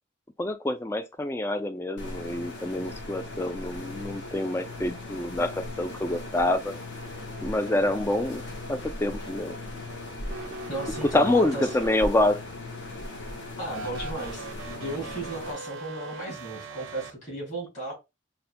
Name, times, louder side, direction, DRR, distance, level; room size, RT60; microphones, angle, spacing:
voice 1, 0.4-6.8 7.4-8.4 8.7-9.6 11.0-12.4, left 1 dB, 15° left, 0.3 m, -26 dB
sound 1, 2.0-15.5, left 2 dB, 60° left, 0.9 m, -38 dB
sound 2, 10.2-12.4 13.7-17.1, right 3 dB, 85° right, 0.5 m, -40 dB
voice 2, 10.7-11.7 13.6-17.9, right 2 dB, 35° left, 2.5 m, -35 dB
5.6 x 2.2 x 2.4 m
head